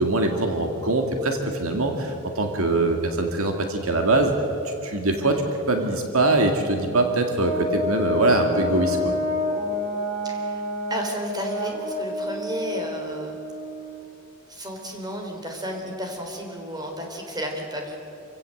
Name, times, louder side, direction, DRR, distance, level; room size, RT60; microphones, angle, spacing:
voice 1, 0.0-4.3 4.6-5.4 5.7-9.1, right 2 dB, 70° right, 4 dB, 2.1 m, -23 dB
Brass instrument, 7.4-14.1, left 2 dB, 35° right, 5.5 m, -29 dB
voice 2, 10.2-10.6 10.9-13.4 14.5-18.0, equal, 20° right, 2 dB, 4.0 m, -32 dB
27.5 x 16.5 x 7.8 m, 2.8 s
head